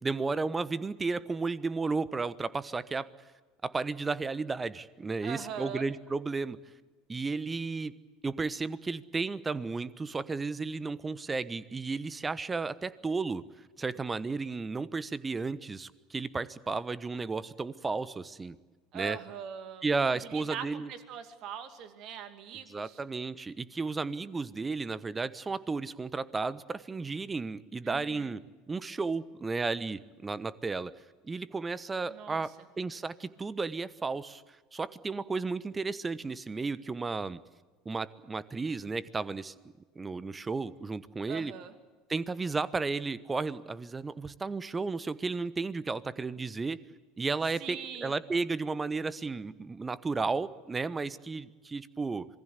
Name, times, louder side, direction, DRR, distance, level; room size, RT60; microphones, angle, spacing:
voice 1, 0.0-3.1 3.6-6.6 7.1-7.9 8.2-13.4 13.8-18.6 18.9-19.2 19.8-20.9 22.7-30.9 31.2-34.4 34.7-37.4 37.8-39.5 39.9-41.5 42.1-46.8 47.2-52.3, right 4 dB, 20° right, 18 dB, 1.1 m, -33 dB
voice 2, 5.2-5.9 18.9-19.8 20.3-23.0 27.8-28.3 32.1-32.7 41.3-41.7 47.6-48.1, right 8 dB, 50° right, 9 dB, 2.6 m, -42 dB
27.0 x 20.0 x 8.2 m, 1.3 s
figure-of-eight pair, 70°, 0 cm